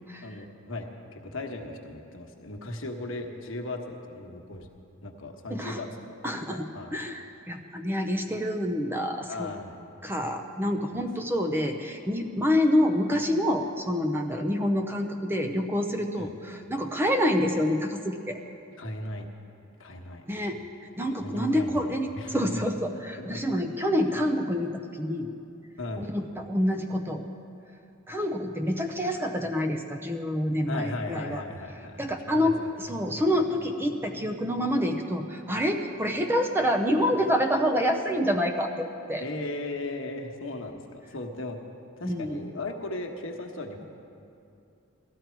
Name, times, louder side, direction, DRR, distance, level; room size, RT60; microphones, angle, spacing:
voice 1, 0.2-4.7 5.0-6.2 6.5-7.0 9.3-9.8 10.9-11.0 16.2-16.3 18.8-19.3 19.8-20.3 21.2-21.9 22.1-22.6 23.2-23.5 25.8-26.1 30.7-32.1 32.4-32.5 39.2-41.6 42.0-43.8, left 2 dB, 65° left, 2 dB, 1.2 m, -37 dB
voice 2, 6.2-9.5 10.0-18.4 20.3-20.6 21.0-25.3 26.0-27.2 28.1-31.4 32.0-39.2 42.0-42.4, equal, 10° right, 5 dB, 0.6 m, -27 dB
17.0 x 13.0 x 4.5 m, 2.6 s
head